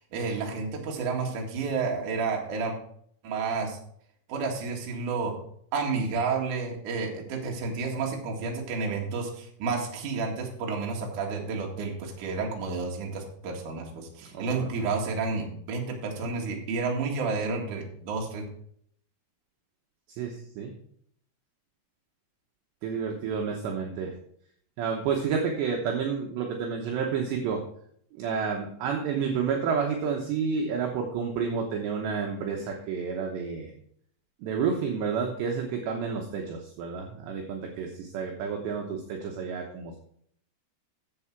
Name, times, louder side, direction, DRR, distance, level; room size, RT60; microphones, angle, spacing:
voice 1, 0.1-2.8 3.2-3.8 4.3-5.3 5.7-18.4, right 4 dB, 50° right, 0 dB, 2.6 m, -30 dB
voice 2, 14.2-14.7 20.1-20.8 22.8-24.1 24.8-27.6 28.1-33.7 34.4-40.0, right 6 dB, 70° right, 1 dB, 2.9 m, -30 dB
11.0 x 7.7 x 4.6 m, 0.65 s
omnidirectional pair, 5.9 m